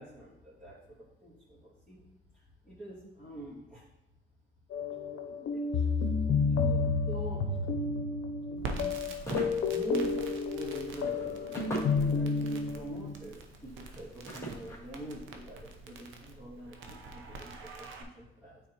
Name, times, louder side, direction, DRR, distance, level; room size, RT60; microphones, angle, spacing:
voice 1, 0.0-2.0 2.3-3.8 4.7-5.8 6.5-7.7 8.5-9.0 9.7-10.2 10.5-18.6, right 1 dB, 5° right, -13 dB, 2.3 m, -45 dB
sound 1, 4.7-13.1, left 4 dB, 75° left, 0.7 m, -31 dB
Crackle, 8.6-18.0, right 3 dB, 85° right, 0.8 m, -45 dB
sound 2, 8.9-15.8, right 2 dB, 15° left, 2.3 m, -44 dB
9.2 x 3.9 x 2.9 m, 0.87 s
cardioid pair, 90°, 20 cm